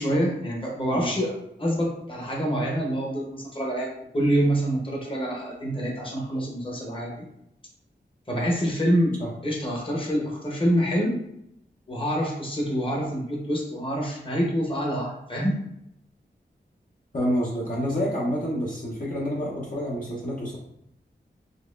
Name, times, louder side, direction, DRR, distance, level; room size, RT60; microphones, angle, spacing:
voice 1, 0.0-7.3 8.3-11.2 11.9-15.7, equal, 30° left, -2 dB, 1.0 m, -26 dB
voice 2, 17.1-20.6, equal, 45° left, -5 dB, 0.8 m, -28 dB
4.0 x 3.0 x 2.5 m, 0.76 s
wide cardioid pair, 85°, 19 cm